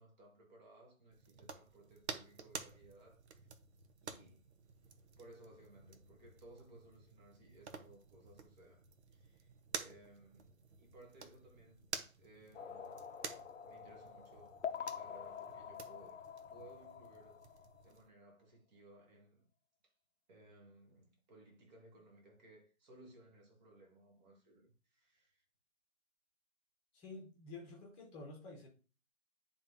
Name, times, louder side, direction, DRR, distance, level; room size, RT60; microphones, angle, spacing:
voice 1, 0.0-3.5 4.0-4.5 5.2-8.9 9.1-11.9 12.2-13.1 13.6-16.2 16.5-17.4 17.8-19.5 20.3-25.4, right 2 dB, 30° right, 1.9 m, -61 dB
sound 1, 1.1-18.1, right 5 dB, 55° right, 0.8 m, -51 dB
sound 2, 12.5-17.9, left 7 dB, 55° left, 0.7 m, -47 dB
voice 2, 26.9-28.7, left 3 dB, 15° left, 1.1 m, -50 dB
10.0 x 3.7 x 2.7 m
figure-of-eight pair, 145°, 41 cm